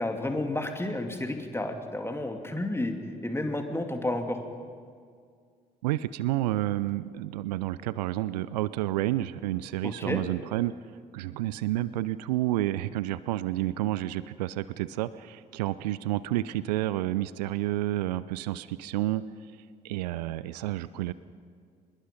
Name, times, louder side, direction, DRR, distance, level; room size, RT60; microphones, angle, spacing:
voice 1, 0.0-3.0 3.2-4.4 9.8-10.2, left 1 dB, 10° left, 5 dB, 2.6 m, -31 dB
voice 2, 5.8-10.7 11.1-19.2 19.8-21.1, right 15 dB, 75° right, 17 dB, 0.5 m, -30 dB
25.0 x 20.5 x 5.4 m, 2.1 s
figure-of-eight pair, 45°, 21 cm